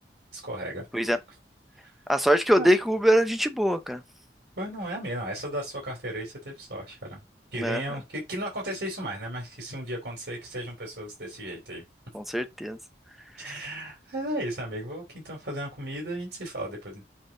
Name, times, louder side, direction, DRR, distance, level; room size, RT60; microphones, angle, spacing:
voice 1, 0.3-0.9 1.8-1.9 2.6-2.7 4.6-7.2 7.5-11.8 13.4-17.1, right 1 dB, 80° right, 3.0 m, -35 dB
voice 2, 2.1-4.0 7.6-7.8 12.1-12.8 13.4-13.6, equal, ahead, 0.7 m, -23 dB
7.3 x 3.6 x 3.8 m
head